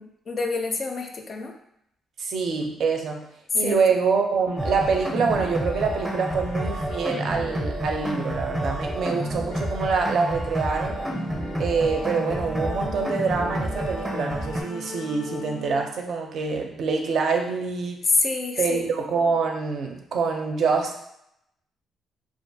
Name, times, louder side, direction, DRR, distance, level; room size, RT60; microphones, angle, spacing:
voice 1, 0.0-1.5 3.5-3.7 18.0-18.9, left 3 dB, 45° left, 3 dB, 0.4 m, -26 dB
voice 2, 2.2-3.3 3.5-11.0 11.6-18.1 18.6-21.0, right 5 dB, 65° right, 2 dB, 0.4 m, -25 dB
sound 1, 4.5-15.8, left 2 dB, 85° left, 0.6 m, -40 dB
sound 2, 4.6-14.6, right 1 dB, 15° right, 0.5 m, -29 dB
2.4 x 2.3 x 2.6 m, 0.77 s
cardioid pair, 90°, 0 cm